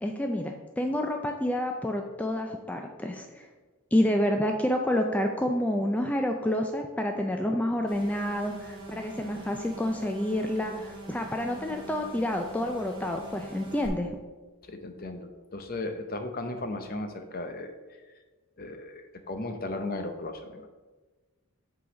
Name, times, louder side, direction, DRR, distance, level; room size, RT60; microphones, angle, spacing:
voice 1, 0.0-3.5 3.9-14.2, left 1 dB, 5° left, 3 dB, 0.3 m, -29 dB
sound 1, 7.9-13.9, right 2 dB, 20° right, 1.8 m, -44 dB
voice 2, 14.7-17.7 18.6-20.7, left 2 dB, 45° left, 7 dB, 0.7 m, -36 dB
8.4 x 3.9 x 5.1 m, 1.3 s
head